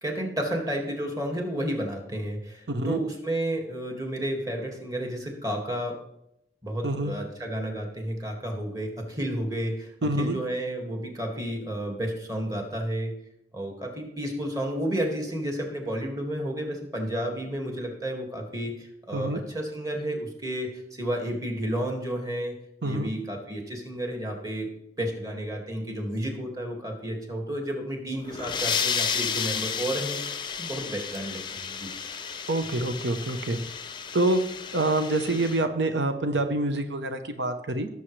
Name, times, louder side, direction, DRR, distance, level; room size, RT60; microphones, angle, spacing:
voice 1, 0.0-6.0 6.6-9.9 10.2-13.1 13.5-22.5 22.8-24.7 25.0-30.2 30.6-31.4 31.7-31.9, right 1 dB, 20° right, 1 dB, 2.0 m, -31 dB
voice 2, 2.7-3.0 6.8-7.1 10.0-10.4 19.1-19.4 22.8-23.1 32.5-33.6 34.1-34.4 34.7-37.9, right 2 dB, 90° right, 7 dB, 0.9 m, -26 dB
sound 1, 28.1-35.6, left 7 dB, 25° left, 0.5 m, -32 dB
17.0 x 7.1 x 3.3 m, 0.78 s
head